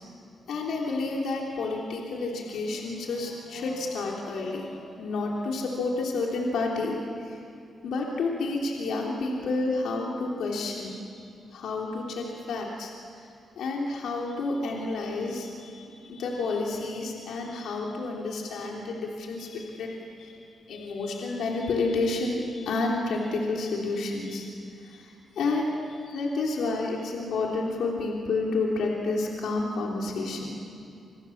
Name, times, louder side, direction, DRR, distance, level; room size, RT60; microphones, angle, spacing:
voice 1, 0.5-7.4 7.8-11.0 11.5-12.9 13.6-20.4 20.7-24.5 24.8-30.5, left 3 dB, 85° left, -1 dB, 3.4 m, -30 dB
29.0 x 28.0 x 7.3 m, 2.5 s
wide cardioid pair, 165°, 0 cm